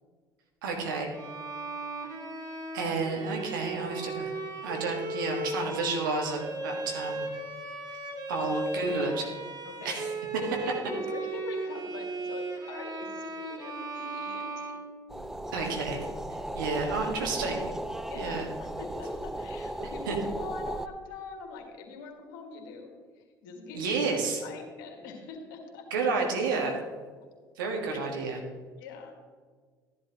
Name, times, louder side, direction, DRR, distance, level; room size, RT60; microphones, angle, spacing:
voice 1, 0.6-1.1 2.7-4.3 4.6-7.3 8.3-9.3 9.8-10.1 15.5-16.1 16.5-17.7 18.1-18.5 20.1-20.2 23.7-24.4 25.9-26.8 27.6-28.4, right 4 dB, 80° right, 1 dB, 1.8 m, -30 dB
Bowed string instrument, 1.1-15.4, right 2 dB, 35° right, 2.2 m, -36 dB
voice 2, 9.6-10.1 10.4-14.8 18.1-24.2 24.4-26.1 27.9-28.0 28.8-29.3, left 4 dB, 70° left, 3 dB, 1.9 m, -43 dB
sound 1, 15.1-20.9, right 1 dB, 5° right, 0.5 m, -36 dB
12.5 x 11.0 x 3.1 m, 1.5 s
hypercardioid pair, 60°, 11 cm